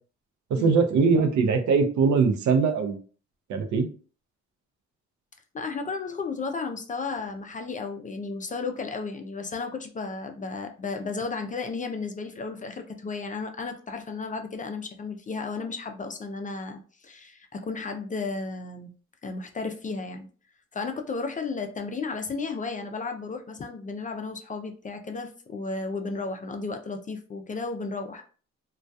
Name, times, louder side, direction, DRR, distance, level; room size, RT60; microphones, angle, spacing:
voice 1, 0.6-3.0 3.5-3.9, right 5 dB, 70° right, 6 dB, 0.6 m, -21 dB
voice 2, 5.5-18.9 19.2-20.3 20.7-28.3, left 4 dB, 25° left, 5 dB, 0.3 m, -33 dB
2.3 x 2.2 x 2.6 m, 0.40 s
cardioid pair, 90°, 30 cm